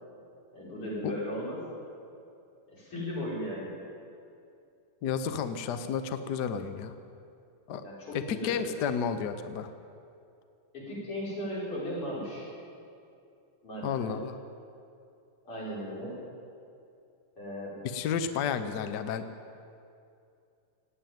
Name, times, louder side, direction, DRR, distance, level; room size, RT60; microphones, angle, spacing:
voice 1, 0.5-1.6 2.7-3.8 7.8-8.7 10.7-12.5 13.6-14.1 15.4-16.2 17.4-17.8, equal, 90° left, -6 dB, 5.7 m, -36 dB
voice 2, 5.0-6.9 7.7-7.8 8.1-9.7 13.8-14.4 17.8-19.3, left 7 dB, 60° left, 10 dB, 1.2 m, -31 dB
17.5 x 9.0 x 9.1 m, 2.5 s
omnidirectional pair, 2.4 m